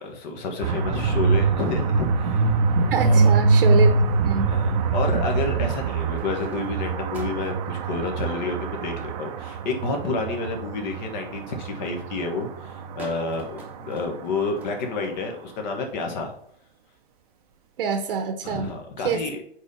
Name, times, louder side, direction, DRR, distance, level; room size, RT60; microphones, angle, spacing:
voice 1, 0.0-2.4 3.0-3.3 4.4-16.3 18.4-19.4, left 3 dB, 45° left, 3 dB, 1.4 m, -29 dB
sound 1, 0.6-14.5, right 4 dB, 35° right, 0.6 m, -24 dB
voice 2, 2.9-4.5 17.8-18.7 19.0-19.2, right 6 dB, 60° right, 6 dB, 0.9 m, -26 dB
sound 2, 3.8-4.8 5.6-7.7 9.8-10.4 10.9-11.3 11.8-12.1 12.4-12.5 13.0-15.5 16.3-16.4 18.2-18.9, right 2 dB, 5° right, 0.9 m, -46 dB
4.7 x 4.3 x 5.3 m, 0.66 s
hypercardioid pair, 150°, 31 cm